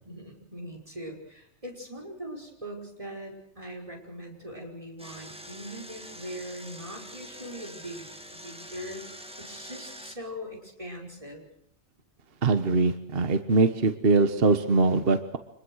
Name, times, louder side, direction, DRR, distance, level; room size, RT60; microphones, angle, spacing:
voice 1, 0.1-11.5, equal, 25° right, 0 dB, 5.6 m, -41 dB
Engine, 5.0-10.1, equal, 5° right, 2.1 m, -45 dB
voice 2, 12.4-15.4, right 3 dB, 45° right, 9 dB, 1.5 m, -22 dB
26.5 x 21.5 x 6.5 m, 0.71 s
omnidirectional pair, 1.5 m